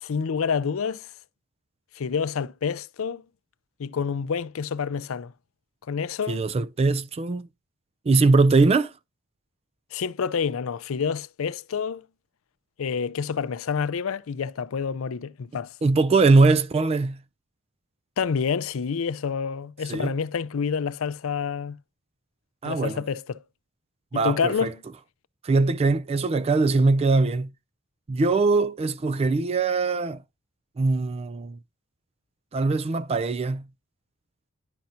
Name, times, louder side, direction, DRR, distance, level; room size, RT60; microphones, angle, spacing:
voice 1, 0.0-1.1 2.0-3.2 3.8-5.3 5.9-6.5 9.9-12.0 12.8-15.7 18.2-21.8 22.6-23.4 24.1-24.7, left 6 dB, 70° left, 0.5 m, -28 dB
voice 2, 6.3-7.5 8.1-8.9 15.8-17.2 19.9-20.1 22.6-23.0 24.1-24.7 25.4-27.5 28.1-30.2 30.8-31.6 32.5-33.6, right 3 dB, 30° right, 0.3 m, -21 dB
10.5 x 5.7 x 2.5 m
head